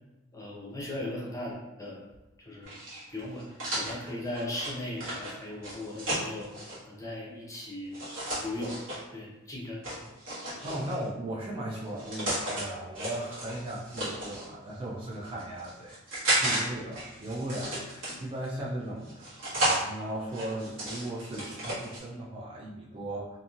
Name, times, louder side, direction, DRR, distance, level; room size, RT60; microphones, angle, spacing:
voice 1, 0.3-2.0 2.4-2.8 3.1-3.4 3.7-6.5 6.9-7.9 8.4-8.8 9.1-9.8, left 1 dB, 15° left, -4 dB, 0.7 m, -37 dB
sound 1, 2.6-6.8 7.9-9.0 9.8-11.1 11.8-12.6 12.9-14.5 15.1-16.6 16.9-18.5 19.0-19.8 20.3-22.0, right 1 dB, 70° right, 1.3 m, -33 dB
voice 2, 10.6-23.4, right 1 dB, 25° right, -4 dB, 0.4 m, -37 dB
2.8 x 2.6 x 2.4 m, 1.1 s
head